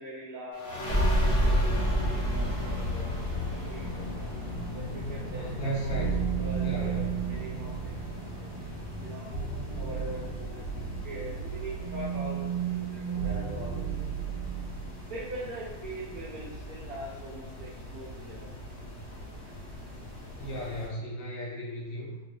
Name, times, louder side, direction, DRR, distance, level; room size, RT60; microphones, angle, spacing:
voice 1, 0.0-4.1 4.7-5.6 6.1-8.5 9.0-9.3 9.7-14.3 15.1-18.5, right 1 dB, 85° right, -6 dB, 0.8 m, -43 dB
sound 1, 0.5-11.8, equal, 15° left, 0.6 m, -31 dB
sound 2, 2.3-20.9, left 1 dB, 45° left, 1.0 m, -44 dB
voice 2, 5.2-6.3 6.6-7.1 20.4-22.2, right 1 dB, 70° left, -4 dB, 1.5 m, -35 dB
sound 3, 5.8-15.0, right 8 dB, 90° left, 1.5 m, -34 dB
3.4 x 2.2 x 3.2 m, 1.0 s
omnidirectional pair, 2.3 m